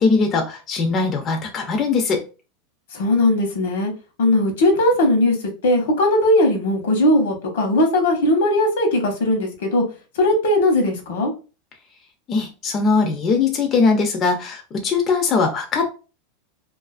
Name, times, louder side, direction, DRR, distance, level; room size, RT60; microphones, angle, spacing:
voice 1, 0.0-2.2 12.3-15.9, left 4 dB, 25° left, 4 dB, 0.3 m, -20 dB
voice 2, 2.9-3.9 4.2-5.4 5.6-9.8 10.2-11.3, left 1 dB, 80° left, 4 dB, 0.8 m, -18 dB
2.4 x 2.3 x 2.3 m, 0.32 s
supercardioid pair, 165°, 0 cm